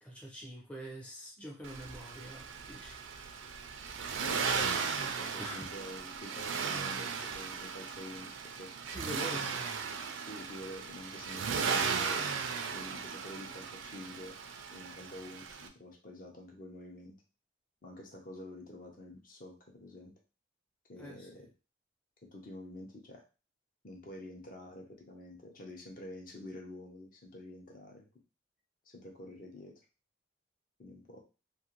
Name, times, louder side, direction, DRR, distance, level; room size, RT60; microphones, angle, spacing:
voice 1, 0.0-3.0 5.4-5.7 8.9-10.0 21.0-21.5, equal, 5° left, -3 dB, 0.5 m, -45 dB
Accelerating revving vroom, 1.6-15.7, right 6 dB, 75° right, 0.4 m, -36 dB
voice 2, 4.2-8.7 9.3-9.4 10.2-12.3 12.7-14.4 14.7-17.2 17.8-20.1 20.9-21.5 22.2-23.2 23.8-28.1 28.8-29.7 30.8-31.2, left 1 dB, 45° left, 1 dB, 0.7 m, -48 dB
2.5 x 2.4 x 2.9 m, 0.32 s
head